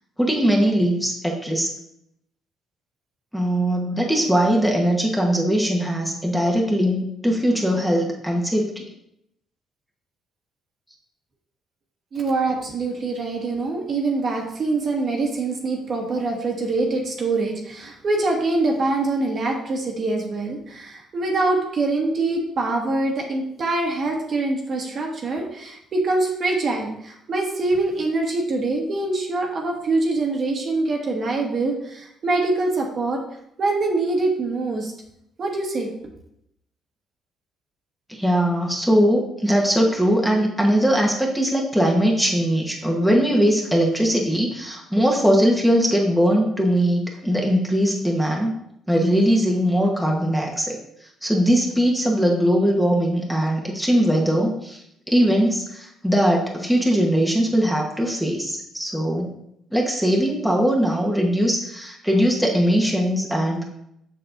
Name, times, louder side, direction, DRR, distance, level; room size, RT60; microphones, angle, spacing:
voice 1, 0.2-1.7 3.3-8.8 38.1-48.5 48.9-50.8 51.2-54.8 55.1-59.4 59.7-63.6, equal, ahead, -1 dB, 1.2 m, -20 dB
voice 2, 12.1-33.2 33.6-34.9 35.4-35.9, right 2 dB, 45° right, 0 dB, 1.4 m, -24 dB
6.7 x 6.4 x 2.6 m, 0.75 s
cardioid pair, 105°, 0 cm